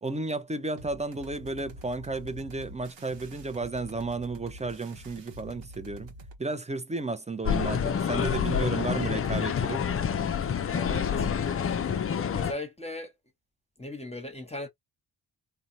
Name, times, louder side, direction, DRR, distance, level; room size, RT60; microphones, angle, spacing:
voice 1, 0.0-6.1 6.4-9.8, right 3 dB, 15° right, 0.6 m, -33 dB
sound 1, 0.8-6.4, right 1 dB, 65° right, 0.9 m, -46 dB
sound 2, 7.5-12.5, left 7 dB, 30° left, 0.4 m, -28 dB
voice 2, 10.7-11.8 12.3-13.1 13.8-14.7, left 1 dB, 15° left, 1.0 m, -38 dB
2.7 x 2.2 x 2.7 m
supercardioid pair, 45°, 47 cm